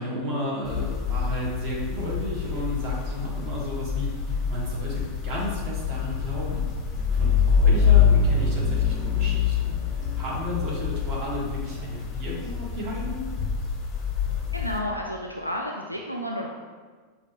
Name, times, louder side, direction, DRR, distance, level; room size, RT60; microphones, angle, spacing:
voice 1, 0.0-4.1 4.5-6.6 7.1-13.2, equal, 40° right, -4 dB, 1.4 m, -33 dB
sound 1, 0.6-14.8, left 6 dB, 25° left, 0.6 m, -25 dB
voice 2, 14.5-16.5, equal, 90° right, 0 dB, 0.3 m, -31 dB
5.8 x 2.7 x 3.0 m, 1.5 s
figure-of-eight pair, 90°, 0 cm